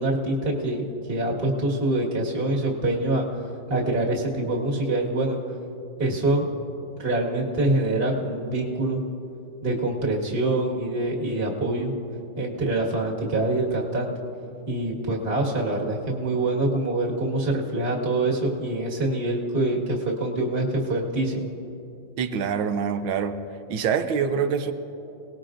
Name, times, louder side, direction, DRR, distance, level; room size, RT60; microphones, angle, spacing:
voice 1, 0.0-3.3 3.7-5.4 6.0-6.4 7.0-9.0 9.6-11.9 12.4-14.1 14.7-21.5, right 2 dB, 30° right, -2 dB, 1.9 m, -25 dB
voice 2, 22.2-23.4 23.7-24.7, right 7 dB, 85° right, 9 dB, 1.6 m, -25 dB
27.5 x 19.0 x 2.6 m, 2.8 s
omnidirectional pair, 2.2 m